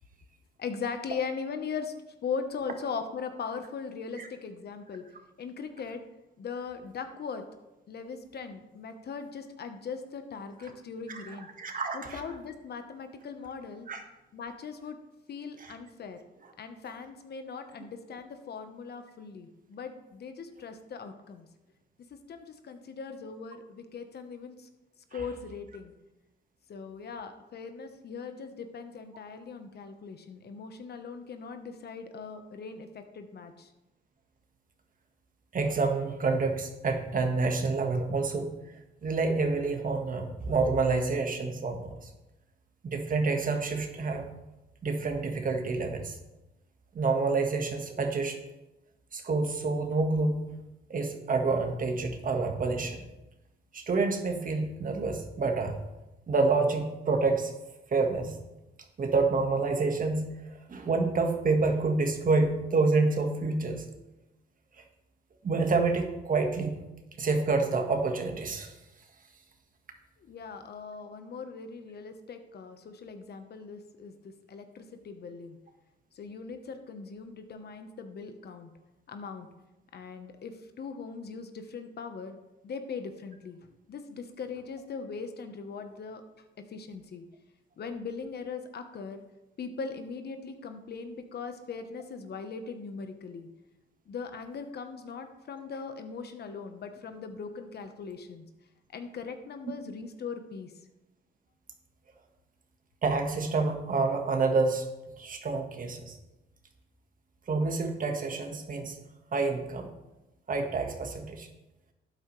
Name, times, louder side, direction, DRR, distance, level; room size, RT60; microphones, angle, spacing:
voice 1, 0.6-1.9 2.2-5.1 5.4-6.0 6.4-7.4 7.9-11.5 11.9-13.9 14.3-15.0 15.3-16.2 16.6-21.5 22.3-24.7 25.1-25.9 26.7-33.7 70.2-75.6 76.1-78.7 79.1-79.5 79.9-82.4 82.6-83.6 83.9-86.2 86.7-87.2 87.8-89.2 89.6-93.5 94.1-98.4 98.9-100.7, left 5 dB, 55° left, 7 dB, 1.2 m, -40 dB
voice 2, 11.1-12.2 13.9-14.0 15.6-15.7 25.1-25.2 35.5-38.5 39.0-42.1 42.8-44.3 44.8-46.2 46.9-48.4 49.1-50.4 50.9-53.0 53.7-55.8 56.3-57.5 57.9-58.3 59.0-60.3 60.7-63.8 65.4-66.8 67.2-68.7 103.0-104.8 105.2-106.2 107.5-108.9 109.3-109.9 110.5-111.5, right 3 dB, 45° right, 4 dB, 1.7 m, -28 dB
12.0 x 9.1 x 3.3 m, 1.0 s
cardioid pair, 90°, 20 cm